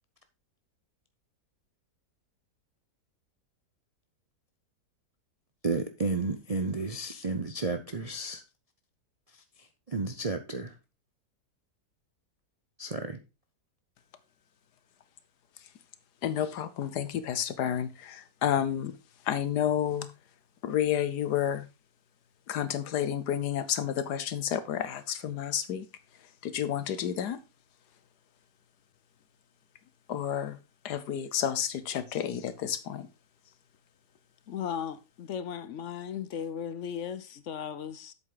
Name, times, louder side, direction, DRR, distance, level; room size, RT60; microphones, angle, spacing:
voice 1, 5.6-8.4 9.9-10.7 12.8-13.2, right 3 dB, 45° right, 0.5 m, -32 dB
voice 2, 16.2-18.9 19.3-20.1 20.6-21.6 22.5-25.9 26.4-27.4 30.1-30.6 30.8-33.1, left 10 dB, 80° left, 1.4 m, -30 dB
voice 3, 34.5-38.1, left 8 dB, 60° left, 0.8 m, -36 dB
7.8 x 7.7 x 3.9 m
omnidirectional pair, 1.7 m